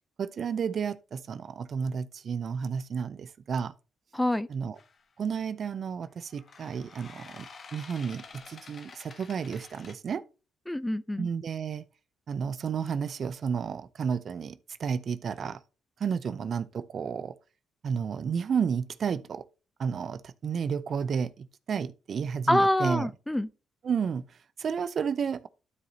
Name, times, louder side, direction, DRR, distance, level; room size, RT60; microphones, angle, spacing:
voice 1, 0.2-3.7 4.5-4.7 5.2-10.2 11.2-11.8 12.3-15.6 16.0-17.3 17.8-19.4 19.8-23.1 23.8-24.2 24.6-25.5, right 6 dB, 50° right, 0.5 m, -32 dB
voice 2, 4.1-4.5 10.7-11.3 22.5-23.5, left 1 dB, 10° left, 0.5 m, -26 dB
sound 1, 4.8-5.0 6.3-9.9, left 5 dB, 45° left, 1.2 m, -49 dB
12.5 x 4.9 x 2.7 m
cardioid pair, 90°, 0 cm